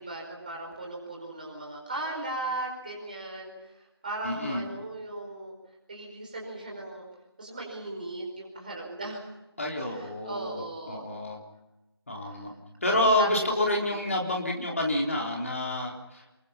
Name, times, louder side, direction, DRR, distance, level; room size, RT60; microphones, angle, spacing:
voice 1, 0.0-3.7 4.0-5.5 5.9-7.1 7.4-9.3 9.9-11.0 12.2-12.4 13.2-13.5 13.8-14.1, right 2 dB, 20° right, -1 dB, 4.7 m, -37 dB
voice 2, 4.2-4.6 9.6-11.4 12.1-12.5 12.8-16.2, left 1 dB, 30° left, -1 dB, 3.8 m, -28 dB
28.0 x 22.5 x 5.8 m, 1.0 s
figure-of-eight pair, 170°, 14 cm